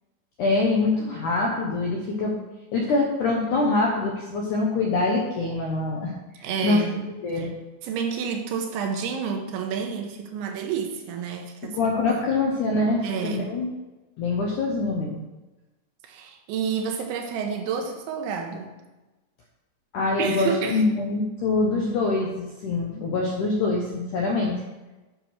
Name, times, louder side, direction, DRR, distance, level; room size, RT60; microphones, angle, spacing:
voice 1, 0.4-2.4 2.7-6.8 7.2-7.5 11.7-13.7 14.2-15.2 19.9-24.6, left 3 dB, 80° left, -1 dB, 1.8 m, -24 dB
voice 2, 6.4-7.5 7.8-11.9 13.0-13.5 16.0-18.7 20.2-20.8, right 6 dB, 90° right, 4 dB, 3.5 m, -30 dB
9.9 x 6.5 x 5.9 m, 1.1 s
omnidirectional pair, 5.2 m